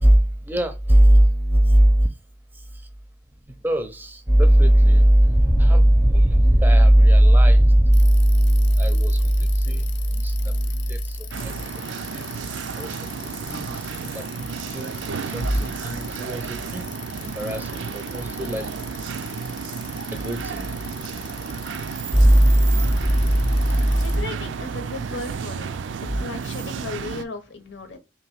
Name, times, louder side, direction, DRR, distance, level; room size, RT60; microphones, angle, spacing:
voice 1, 0.0-2.1 3.6-11.5 12.1-12.3 12.8-13.8 14.1-14.2 14.7-14.9 15.2-16.9 17.2-18.7 20.1-20.7 22.1-24.2 26.1-26.2, right 1 dB, 10° right, 0.5 m, -18 dB
Bicycle, 7.9-24.2, left 11 dB, 70° left, 0.5 m, -42 dB
sound 1, 11.3-27.2, right 6 dB, 80° right, 0.4 m, -32 dB
voice 2, 24.0-25.7 26.2-28.0, left 3 dB, 90° left, 0.9 m, -35 dB
3.0 x 2.9 x 4.6 m
head